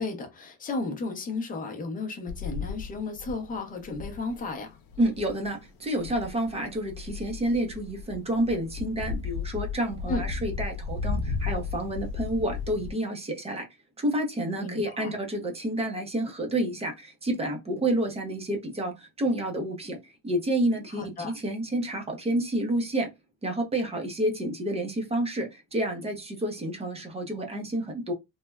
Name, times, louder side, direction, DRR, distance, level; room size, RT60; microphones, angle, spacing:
voice 1, 0.0-4.8 10.1-10.3 14.6-15.1 20.9-21.3, left 3 dB, 25° left, 0.6 m, -34 dB
sound 1, 2.3-12.9, left 5 dB, 85° left, 0.6 m, -35 dB
voice 2, 5.0-13.7 14.0-20.0 20.2-23.1 23.4-28.1, right 1 dB, 20° right, 0.6 m, -29 dB
3.2 x 2.1 x 2.2 m
cardioid pair, 160°, 34 cm